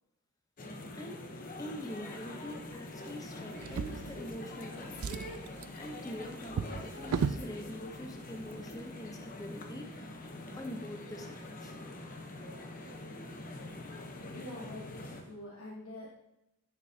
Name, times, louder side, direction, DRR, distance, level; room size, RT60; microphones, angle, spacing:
sound 1, 0.6-15.2, left 2 dB, 40° left, 0.9 m, -44 dB
voice 1, 0.9-1.2 1.6-5.1 5.8-10.2 10.5-11.7, equal, 15° left, 4 dB, 0.8 m, -44 dB
Drawer open or close, 3.6-4.6 4.9-7.5 8.4-8.5 8.9-9.0, right 6 dB, 80° right, 0.4 m, -36 dB
voice 2, 14.3-16.1, left 1 dB, 70° left, -4 dB, 1.3 m, -45 dB
10.5 x 5.9 x 2.8 m, 0.88 s
head